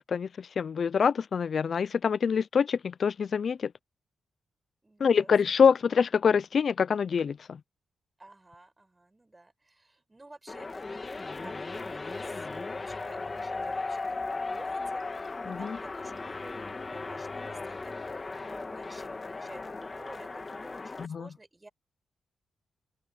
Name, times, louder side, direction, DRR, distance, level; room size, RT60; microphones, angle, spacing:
voice 1, 0.0-3.7 5.0-7.4 15.5-15.8 21.0-21.3, left 6 dB, 45° left, 0.3 m, -25 dB
voice 2, 4.8-5.3 8.2-10.8 11.1-21.7, right 2 dB, 15° right, 7.9 m, -52 dB
sound 1, 10.5-21.1, left 3 dB, 25° left, 1.6 m, -37 dB
open air
wide cardioid pair, 150°, 0 cm